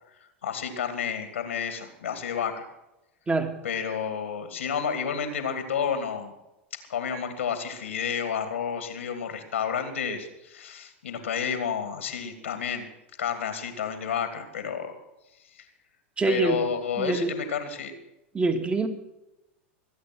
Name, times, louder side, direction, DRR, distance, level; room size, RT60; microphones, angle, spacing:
voice 1, 0.4-2.7 3.6-6.3 6.9-12.9 13.2-14.9 16.3-17.9, left 7 dB, 90° left, 8 dB, 2.6 m, -30 dB
voice 2, 16.2-16.6 17.0-17.3 18.3-18.9, right 3 dB, 15° right, 7 dB, 2.2 m, -24 dB
22.5 x 8.8 x 6.2 m, 0.93 s
hypercardioid pair, 105°, 7 cm